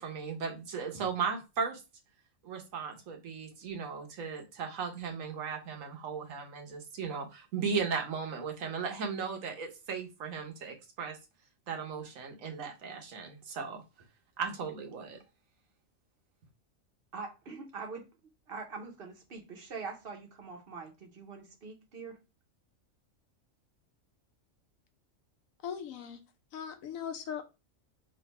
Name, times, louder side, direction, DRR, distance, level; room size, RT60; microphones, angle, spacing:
voice 1, 0.0-1.8 2.4-11.2 11.7-13.8 14.4-15.2, right 5 dB, 75° right, 1.2 m, -36 dB
voice 2, 17.1-18.1 18.5-22.2, right 4 dB, 50° right, 0.9 m, -43 dB
voice 3, 25.6-26.2 26.5-27.4, left 8 dB, 85° left, 1.1 m, -39 dB
3.2 x 2.6 x 4.0 m
omnidirectional pair, 1.4 m